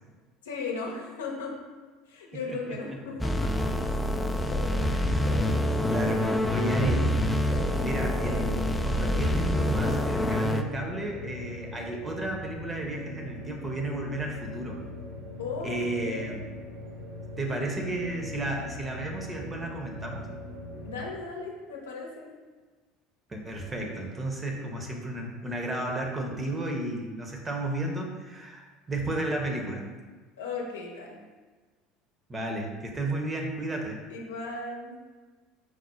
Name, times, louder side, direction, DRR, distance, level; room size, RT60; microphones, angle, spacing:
voice 1, 0.4-1.5 2.1-3.5 15.4-16.4 20.8-22.3 30.4-31.2 34.1-35.0, left 4 dB, 80° left, -1 dB, 0.7 m, -36 dB
voice 2, 2.5-3.0 4.9-5.5 5.9-7.1 7.8-14.8 15.6-16.4 17.4-20.3 23.3-29.9 32.3-34.0, right 1 dB, 25° right, 1 dB, 0.8 m, -33 dB
sound 1, 3.0-21.1, left 1 dB, 80° right, 0.7 m, -41 dB
sound 2, 3.2-10.6, left 1 dB, 10° left, 0.3 m, -26 dB
sound 3, 4.5-10.5, left 2 dB, 40° left, 1.0 m, -38 dB
4.8 x 2.1 x 4.2 m, 1.3 s
hypercardioid pair, 70°, 0 cm